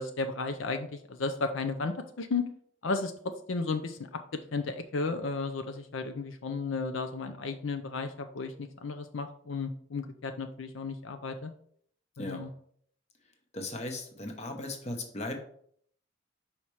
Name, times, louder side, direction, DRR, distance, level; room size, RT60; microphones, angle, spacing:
voice 1, 0.0-2.5 2.8-3.1 3.5-4.0 4.5-11.5 12.2-12.5, left 4 dB, 75° left, 7 dB, 0.6 m, -34 dB
voice 2, 13.5-15.4, left 2 dB, 35° left, 4 dB, 0.9 m, -37 dB
5.7 x 4.3 x 4.7 m, 0.62 s
head